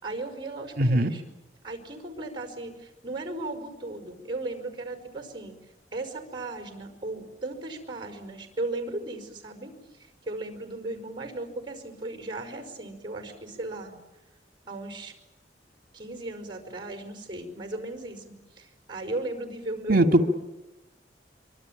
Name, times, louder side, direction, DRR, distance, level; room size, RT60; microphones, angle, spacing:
voice 1, 0.0-1.2 1.6-5.6 5.9-9.7 10.2-14.0 14.7-15.1 15.9-20.3, right 2 dB, 30° right, 7 dB, 5.3 m, -36 dB
voice 2, 0.8-1.1 19.9-20.3, right 1 dB, 55° right, 6 dB, 2.1 m, -20 dB
25.0 x 25.0 x 9.0 m, 0.98 s
head